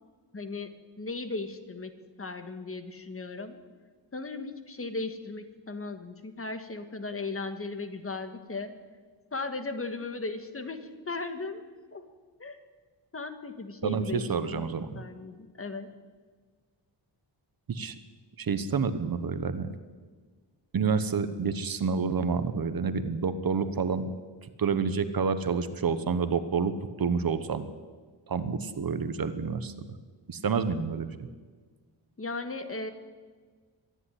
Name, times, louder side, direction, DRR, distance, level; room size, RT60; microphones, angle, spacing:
voice 1, 0.3-0.7 1.0-1.9 2.2-3.6 4.1-8.7 9.3-10.8 11.1-11.6 11.9-12.0 12.4-12.6 13.1-14.7 14.9-15.9 32.2-32.9, left 3 dB, 30° left, 8 dB, 1.6 m, -36 dB
voice 2, 13.8-15.0 17.7-17.9 18.4-19.7 20.7-24.1 24.6-26.7 27.0-27.7 28.3-29.7 30.3-31.1, right 5 dB, 50° right, 11 dB, 1.2 m, -28 dB
24.0 x 11.0 x 10.0 m, 1.5 s
wide cardioid pair, 155°, 45 cm